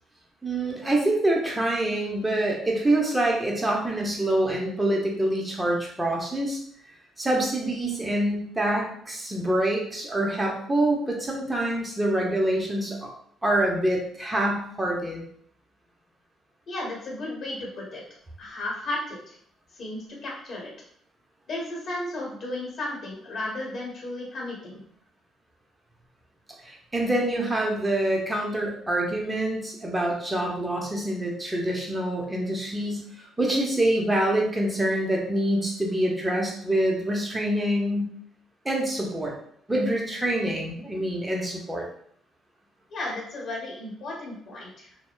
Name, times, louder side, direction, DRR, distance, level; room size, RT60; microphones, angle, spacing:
voice 1, 0.4-6.6 7.2-13.1 13.4-15.3 26.6-38.1 38.6-39.4 39.7-41.8, right 1 dB, 10° right, -1 dB, 0.7 m, -26 dB
voice 2, 16.7-18.0 18.4-19.4 19.7-20.7 21.5-24.8 42.9-44.9, left 1 dB, 50° left, -2 dB, 1.0 m, -34 dB
2.7 x 2.1 x 2.2 m, 0.64 s
cardioid pair, 90°, 0 cm